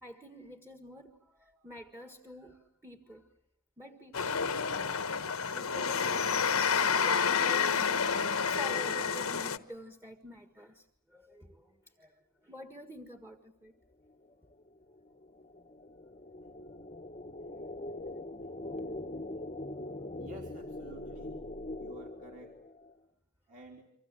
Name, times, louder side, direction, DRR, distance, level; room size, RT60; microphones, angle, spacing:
voice 1, 0.0-3.3 3.8-13.7 18.5-19.1, equal, 10° right, 1.7 m, -49 dB
sound 1, 4.1-9.6, left 6 dB, 80° left, 1.2 m, -29 dB
sound 2, 14.1-23.0, left 2 dB, 30° left, 1.0 m, -42 dB
voice 2, 20.2-21.4 21.8-22.5 23.5-23.8, right 2 dB, 40° right, 3.2 m, -50 dB
30.0 x 25.0 x 7.6 m
head